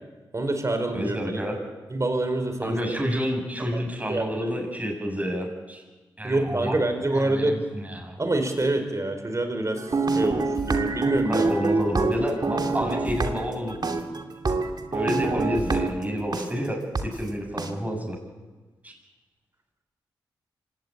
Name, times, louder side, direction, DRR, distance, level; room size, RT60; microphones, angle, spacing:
voice 1, 0.3-1.4 1.9-3.0 3.7-3.8 4.1-4.5 6.2-7.6 8.2-9.9 10.1-11.5, right 2 dB, 35° right, 6 dB, 4.8 m, -26 dB
voice 2, 0.9-1.6 2.6-5.8 6.2-6.7 7.1-8.2 11.2-13.7 14.9-18.2 18.8-18.9, equal, 15° right, 0 dB, 7.8 m, -29 dB
sound 1, 9.7-16.4 16.9-17.0 17.6-17.7, right 3 dB, 50° right, 2.6 m, -26 dB
24.5 x 18.5 x 9.0 m, 1.3 s
supercardioid pair, 40°, 9 cm